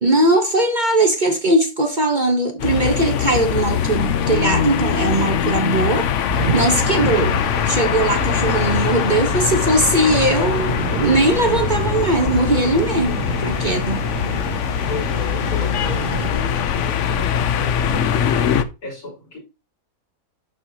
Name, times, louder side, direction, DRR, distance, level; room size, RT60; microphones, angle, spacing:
voice 1, 0.0-6.1 6.5-14.0, right 2 dB, 35° right, 1.1 m, -19 dB
sound 1, 2.6-18.6, left 8 dB, 60° left, 0.9 m, -22 dB
sound 2, 6.3-16.3, right 8 dB, 60° right, 0.5 m, -30 dB
voice 2, 14.9-18.1 18.8-19.4, left 2 dB, 80° left, 5.5 m, -34 dB
11.0 x 4.5 x 2.9 m
omnidirectional pair, 1.5 m